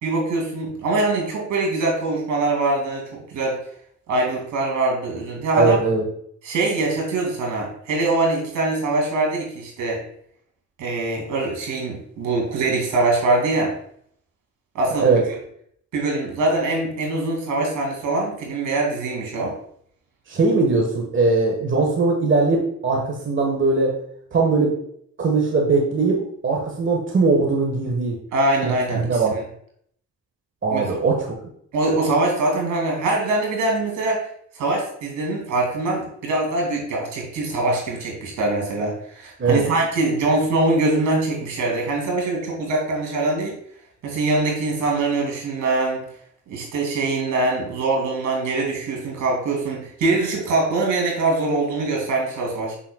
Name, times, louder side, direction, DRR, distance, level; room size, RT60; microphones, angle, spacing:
voice 1, 0.0-3.6 4.1-5.8 6.4-10.0 10.8-13.7 14.7-15.2 15.9-19.5 28.3-29.2 30.7-31.0 31.7-34.2 34.5-43.6 44.0-46.0 46.5-52.7, right 2 dB, 75° right, 0 dB, 2.5 m, -23 dB
voice 2, 5.5-6.0 15.0-15.2 20.3-23.9 24.3-24.8 25.2-28.2 28.6-29.3 30.6-31.3 39.4-39.6, right 3 dB, 40° right, 0 dB, 1.4 m, -20 dB
6.6 x 6.2 x 2.3 m, 0.66 s
cardioid pair, 90°, 30 cm